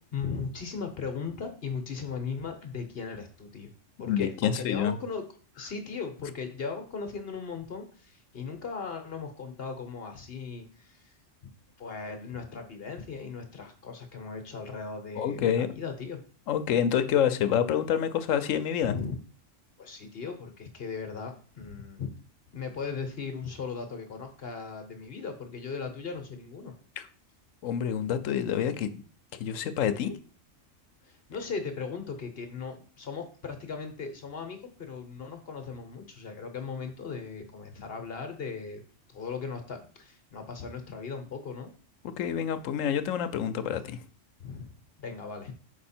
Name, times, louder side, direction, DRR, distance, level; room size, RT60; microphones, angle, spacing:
voice 1, 0.1-3.7 4.0-5.2 5.6-11.2 11.8-16.2 18.8-19.1 19.8-22.1 22.5-26.7 31.0-38.8 39.1-41.7 44.4-45.5, left 5 dB, 50° left, 5 dB, 1.1 m, -38 dB
voice 2, 4.1-4.9 15.2-15.7 16.5-18.9 27.0-27.1 27.6-28.9 29.4-30.1 42.0-44.0, left 9 dB, 80° left, 11 dB, 1.0 m, -27 dB
6.2 x 4.8 x 4.3 m, 0.41 s
omnidirectional pair, 1.3 m